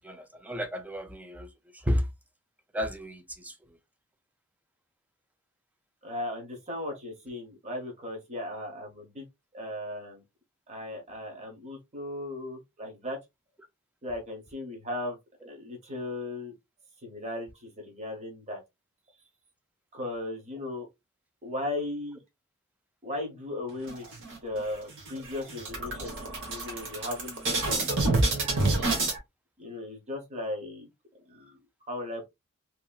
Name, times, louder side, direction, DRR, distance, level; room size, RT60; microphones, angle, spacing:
voice 1, 0.0-1.5 1.8-2.0 2.7-3.5, equal, 5° right, 0.3 m, -31 dB
voice 2, 6.0-9.2 9.5-10.2 10.7-13.2 14.0-15.2 15.5-16.5 17.0-18.6 19.9-20.9 21.4-22.2 23.0-27.8 29.6-30.9 31.3-31.6 31.9-32.3, left 1 dB, 30° right, 0.9 m, -37 dB
sound 1, 23.9-24.6 25.0-25.1 25.4-29.2, right 2 dB, 55° right, 1.1 m, -28 dB
2.8 x 2.7 x 2.3 m
head